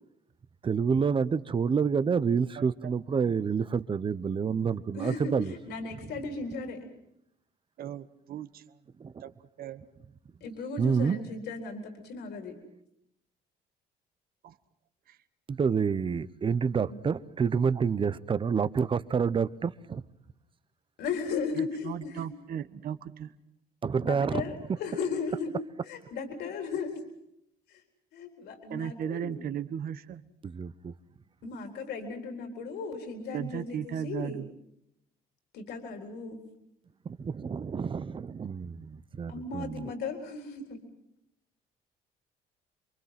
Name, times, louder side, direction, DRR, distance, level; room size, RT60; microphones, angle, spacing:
voice 1, 0.6-5.5 9.0-9.2 10.8-11.2 15.5-20.0 23.8-24.5 30.4-30.9 37.0-39.9, right 6 dB, 30° right, 0.8 m, -28 dB
voice 2, 2.6-2.9 7.8-8.8 9.2-9.3 9.6-9.8 14.4-14.6 15.1-15.2 21.5-23.4 28.7-30.2 33.3-34.5, right 9 dB, 60° right, 1.2 m, -36 dB
voice 3, 4.9-6.9 10.4-12.6 21.0-22.3 24.0-25.5 25.8-26.9 27.7-27.8 28.1-29.3 31.4-34.4 35.5-36.4 39.3-40.8, left 4 dB, 75° left, 4.1 m, -36 dB
27.5 x 23.5 x 5.9 m
cardioid pair, 110°, 17 cm